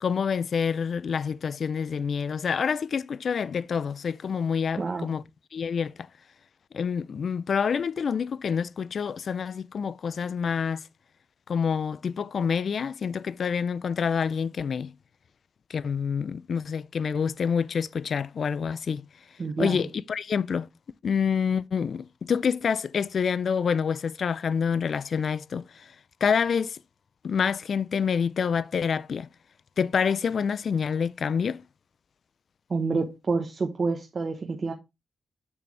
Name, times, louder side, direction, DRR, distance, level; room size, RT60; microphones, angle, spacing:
voice 1, 0.0-5.2 5.5-6.1 6.7-10.8 11.5-14.9 15.7-19.1 19.6-20.7 21.0-26.0 26.2-26.8 27.2-29.3 29.8-31.6, left 6 dB, 60° left, 0.3 m, -27 dB
voice 2, 4.8-5.1 19.4-19.9 32.7-34.7, right 4 dB, 40° right, 1.0 m, -28 dB
6.9 x 6.0 x 3.2 m
cardioid pair, 95°, 0 cm